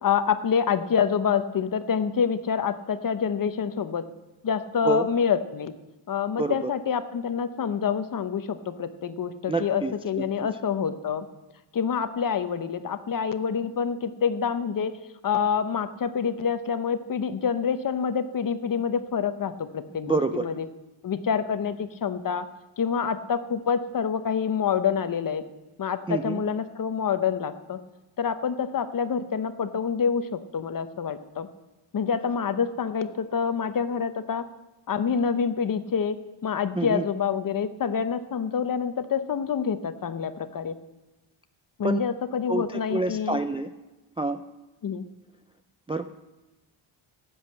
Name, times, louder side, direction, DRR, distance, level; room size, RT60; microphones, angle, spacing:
voice 1, 0.0-4.0 4.4-5.7 6.1-11.3 11.7-14.9 15.2-20.7 21.0-22.5 22.8-25.4 25.8-27.8 28.2-31.5 31.9-34.5 34.9-40.8 41.8-43.4 44.8-45.0, left 7 dB, 45° left, 11 dB, 0.8 m, -27 dB
voice 2, 6.4-6.7 9.5-10.2 20.0-20.5 26.1-26.4 36.8-37.0 41.8-42.0 42.5-43.7 44.2-44.4 45.9-46.1, right 3 dB, 15° right, 7 dB, 0.3 m, -27 dB
12.5 x 8.1 x 7.6 m, 1.1 s
cardioid pair, 115°, 48 cm